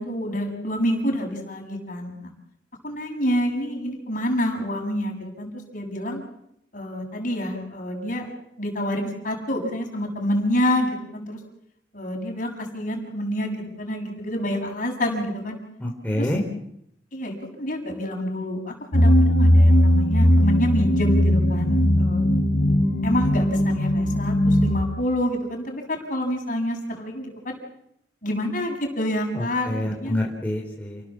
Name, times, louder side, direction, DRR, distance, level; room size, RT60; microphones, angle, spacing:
voice 1, 0.0-2.3 2.8-6.2 6.7-8.3 8.6-11.4 11.9-15.6 16.1-16.3 17.1-22.2 23.0-27.6 28.2-30.1, equal, 50° left, 2 dB, 7.1 m, -27 dB
voice 2, 15.8-16.4 29.3-31.1, left 1 dB, 10° left, -2 dB, 3.6 m, -27 dB
sound 1, 18.9-24.8, equal, 70° left, 3.7 m, -18 dB
29.5 x 19.0 x 7.5 m, 0.76 s
head